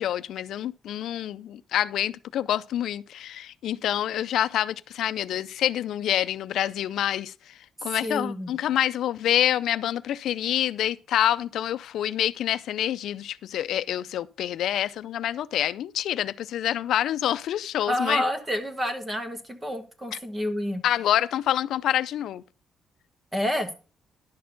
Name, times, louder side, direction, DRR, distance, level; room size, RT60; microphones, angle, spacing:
voice 1, 0.0-7.3 7.8-18.2 20.8-22.4, left 11 dB, 75° left, 0.4 m, -27 dB
voice 2, 8.0-8.5 17.9-20.8 23.3-23.7, left 1 dB, 10° right, 1.4 m, -29 dB
11.0 x 6.6 x 3.9 m
cardioid pair, 175°, 0 cm